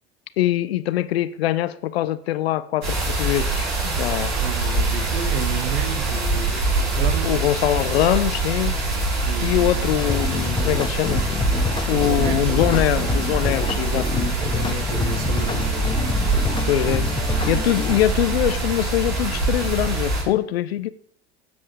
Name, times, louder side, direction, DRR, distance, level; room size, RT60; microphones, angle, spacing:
voice 1, 0.4-4.4 7.2-8.7 9.4-11.2 11.9-14.9 16.7-17.1 17.5-20.9, left 13 dB, 65° left, 0.8 m, -23 dB
sound 1, 2.8-20.2, right 3 dB, 75° right, 4.8 m, -24 dB
voice 2, 4.4-7.5 9.2-10.0 11.9-12.6 14.1-16.1, right 7 dB, 55° right, 1.8 m, -32 dB
sound 2, 10.0-18.0, left 4 dB, 15° left, 1.2 m, -27 dB
16.5 x 7.6 x 3.5 m
figure-of-eight pair, 70°, 33 cm